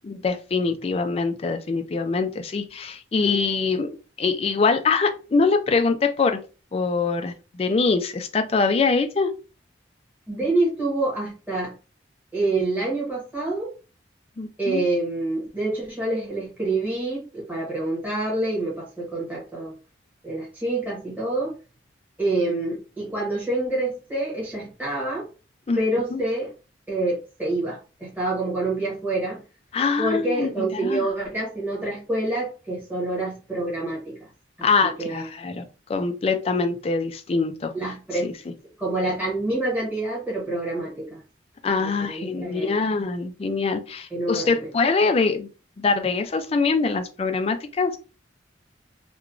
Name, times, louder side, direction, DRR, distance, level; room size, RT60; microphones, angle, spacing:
voice 1, 0.0-6.4 6.7-9.3 14.4-14.8 25.7-25.8 26.1-26.2 29.7-31.0 34.6-35.6 35.9-37.9 38.2-38.5 41.6-45.5 45.8-48.0, left 4 dB, 30° left, 0.3 m, -24 dB
voice 2, 10.3-11.8 12.3-13.7 14.6-19.7 20.2-21.5 22.2-25.3 25.8-26.5 26.9-29.4 30.0-34.3 34.6-34.7 35.0-35.3 37.7-38.3 38.8-41.2 41.8-42.8 44.1-44.7, right 2 dB, 10° right, 1.0 m, -27 dB
2.8 x 2.1 x 2.5 m
head